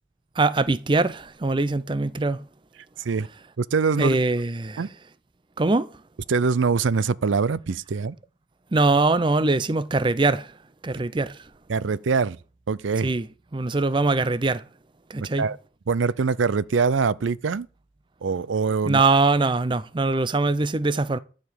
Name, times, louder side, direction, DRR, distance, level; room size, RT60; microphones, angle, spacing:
voice 1, 0.4-2.4 4.0-4.9 5.6-6.0 8.7-10.6 10.8-11.5 13.0-13.3 13.5-14.6 15.1-15.5 18.8-21.2, right 3 dB, 25° right, 0.5 m, -22 dB
voice 2, 3.6-4.2 4.8-4.9 6.3-8.2 11.7-12.4 12.7-13.1 15.4-15.6 15.9-17.7 18.2-19.0, right 5 dB, 80° right, 0.5 m, -23 dB
12.5 x 5.1 x 8.4 m
head